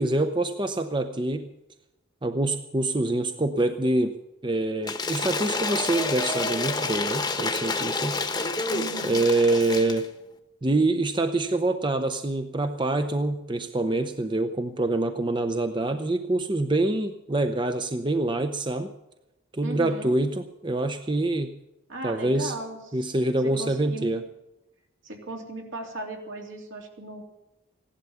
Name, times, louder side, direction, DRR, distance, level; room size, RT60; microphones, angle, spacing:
voice 1, 0.0-1.5 2.2-4.1 4.4-8.2 9.0-10.1 10.6-18.9 19.5-21.5 22.0-22.5 22.9-24.2, right 2 dB, 25° right, 7 dB, 0.6 m, -25 dB
Cheering / Applause / Crowd, 4.8-10.1, left 3 dB, 20° left, 1.0 m, -29 dB
voice 2, 8.7-9.2 19.6-20.1 21.9-23.1 23.4-24.1 25.0-27.2, right 2 dB, 70° right, 1 dB, 3.1 m, -37 dB
16.5 x 11.5 x 7.0 m, 0.96 s
head